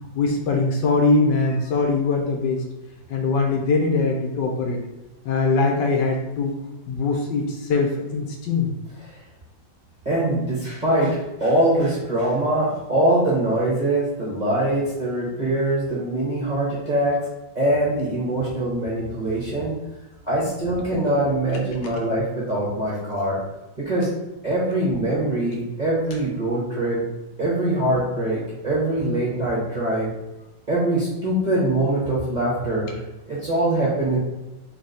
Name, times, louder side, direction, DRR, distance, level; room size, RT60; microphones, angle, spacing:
voice 1, 0.1-2.6 3.1-4.8 5.2-6.5 6.9-8.7 20.4-20.5, left 3 dB, 70° left, 2 dB, 1.3 m, -22 dB
voice 2, 10.0-17.2 17.5-19.8 20.2-23.4 23.8-24.1 24.4-27.0 27.4-30.1 30.7-33.0 33.3-34.2, right 1 dB, 30° right, -7 dB, 0.9 m, -23 dB
3.4 x 3.1 x 3.9 m, 1.0 s
omnidirectional pair, 2.1 m